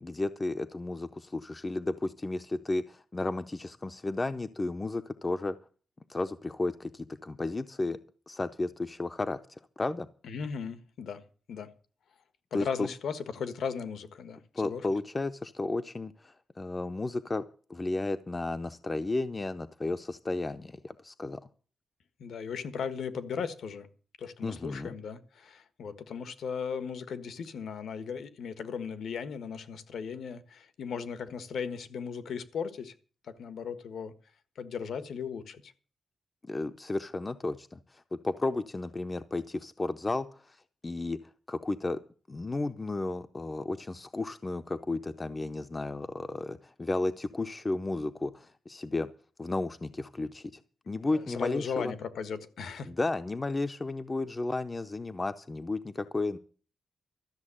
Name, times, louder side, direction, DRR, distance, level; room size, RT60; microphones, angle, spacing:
voice 1, 0.0-5.6 6.1-8.0 8.3-10.1 12.5-12.9 14.5-17.4 17.7-21.4 24.4-24.9 36.4-40.6 40.8-41.2 41.5-42.0 42.3-49.1 49.4-50.6 50.9-51.9 52.9-56.4, left 2 dB, 20° left, 0.6 m, -33 dB
voice 2, 10.2-11.2 11.5-11.7 12.5-14.8 22.2-23.9 24.2-32.9 33.3-34.1 34.5-35.7 50.9-52.9, left 6 dB, 80° left, 1.5 m, -37 dB
13.0 x 7.2 x 9.9 m
wide cardioid pair, 155°, 0 cm